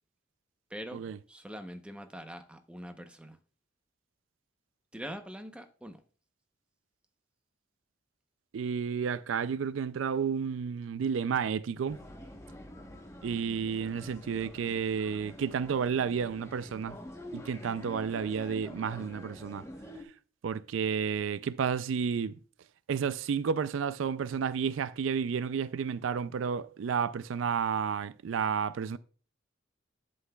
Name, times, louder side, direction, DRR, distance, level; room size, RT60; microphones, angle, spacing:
voice 1, 0.7-3.4 4.9-6.0, equal, 5° right, 0.7 m, -43 dB
voice 2, 8.5-12.0 13.2-17.0 17.3-19.7 20.4-22.3 22.9-29.0, right 6 dB, 85° right, 0.4 m, -31 dB
sound 1, 11.9-20.0, left 1 dB, 15° left, 1.0 m, -47 dB
11.5 x 7.7 x 2.3 m
head